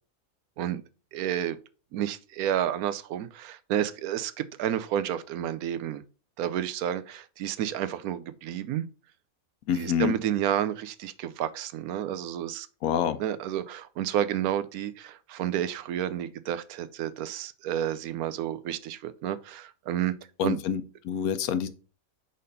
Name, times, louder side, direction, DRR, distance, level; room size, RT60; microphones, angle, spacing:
voice 1, 1.1-1.6 1.9-6.0 6.4-8.9 9.7-12.7 13.2-20.1 20.4-20.6, right 10 dB, 80° right, 1.1 m, -30 dB
voice 2, 9.7-10.2 12.8-13.2 20.4-21.7, left 9 dB, 75° left, 1.1 m, -27 dB
5.1 x 4.2 x 5.3 m
omnidirectional pair, 1.5 m